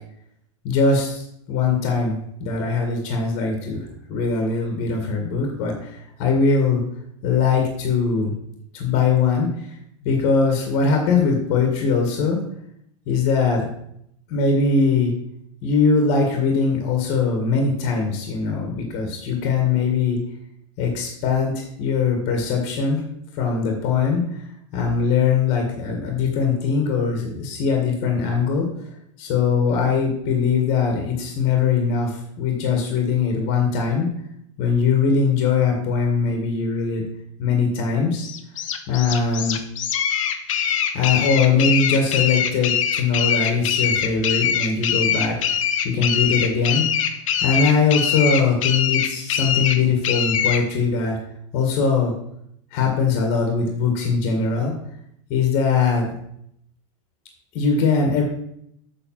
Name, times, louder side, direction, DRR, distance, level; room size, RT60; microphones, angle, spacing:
voice 1, 0.6-6.8 7.2-8.3 8.7-9.7 10.0-12.4 13.1-13.7 14.3-15.1 15.6-20.2 20.8-23.0 23.3-24.3 24.7-28.7 29.2-34.1 34.6-37.0 37.4-38.3 38.9-39.6 40.9-47.0 47.4-51.2 51.5-52.1 52.7-54.7 55.3-56.1 57.5-58.2, left 5 dB, 40° left, 2 dB, 2.0 m, -21 dB
sound 1, 38.2-50.6, left 8 dB, 75° left, 1.1 m, -23 dB
7.6 x 6.1 x 5.9 m, 0.73 s
supercardioid pair, 160°, 17 cm